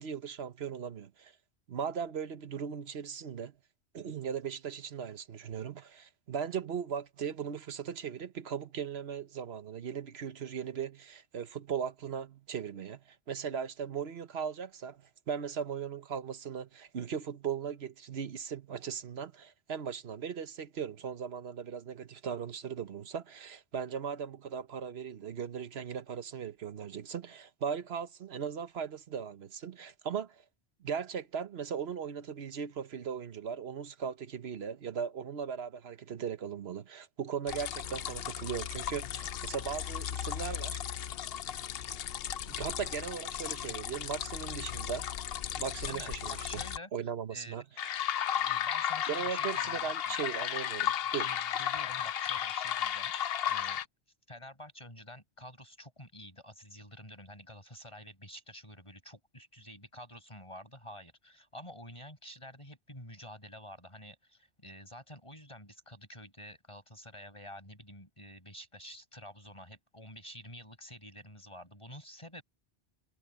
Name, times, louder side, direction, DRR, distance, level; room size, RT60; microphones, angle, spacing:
voice 1, 0.0-1.3 1.7-3.5 3.9-30.4 30.8-40.8 42.5-45.1 45.6-46.6 46.9-47.9 49.1-51.3, right 7 dB, 70° right, 1.2 m, -38 dB
sound 1, 37.5-46.8 47.8-53.8, left 9 dB, 65° left, 0.8 m, -35 dB
voice 2, 45.9-46.9 47.3-47.8 48.4-50.1 51.2-53.9 54.3-72.4, equal, 25° left, 6.1 m, -49 dB
omnidirectional pair, 1.1 m